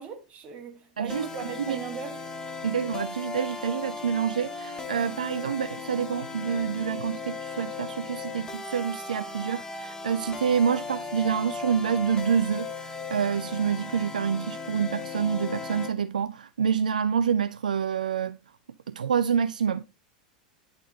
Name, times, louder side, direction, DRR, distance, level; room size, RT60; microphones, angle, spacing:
voice 1, 0.0-2.2, right 6 dB, 30° right, 2.0 m, -39 dB
voice 2, 1.0-1.3 1.7-1.8 2.6-18.4 18.9-19.8, right 7 dB, 75° right, 0.3 m, -27 dB
sound 1, 1.1-15.9, left 4 dB, 15° left, 1.3 m, -37 dB
10.0 x 4.1 x 3.8 m
figure-of-eight pair, 85°, 4 cm